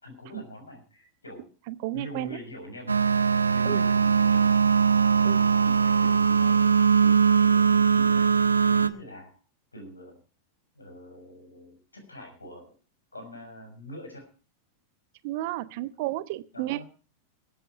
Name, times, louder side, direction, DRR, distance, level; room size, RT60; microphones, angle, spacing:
voice 1, 0.0-1.5 1.9-2.9 3.5-4.6 5.6-8.2 8.7-9.4 9.7-10.2 10.7-12.7 13.1-14.3 16.5-16.8, left 1 dB, 80° left, 4 dB, 5.9 m, -44 dB
voice 2, 1.7-2.4 3.6-3.9 5.2-5.4 15.2-16.8, right 16 dB, 50° right, 16 dB, 0.8 m, -32 dB
sound 1, 2.9-8.9, right 6 dB, 80° right, 0.6 m, -21 dB
22.5 x 8.4 x 4.5 m, 0.36 s
figure-of-eight pair, 90°, 0 cm